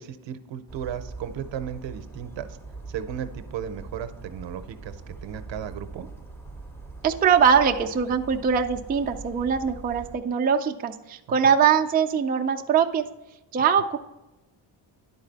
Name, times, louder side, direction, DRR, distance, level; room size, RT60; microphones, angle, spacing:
voice 1, 0.0-2.5 2.9-6.1 11.3-11.5, right 9 dB, 70° right, 10 dB, 0.7 m, -35 dB
Bird vocalization bird call bird song, 0.7-10.2, right 3 dB, 5° left, 0.7 m, -42 dB
voice 2, 7.0-13.1 13.5-14.0, right 7 dB, 25° right, 4 dB, 0.3 m, -22 dB
10.5 x 4.1 x 4.0 m, 1.0 s
cardioid pair, 115°, 46 cm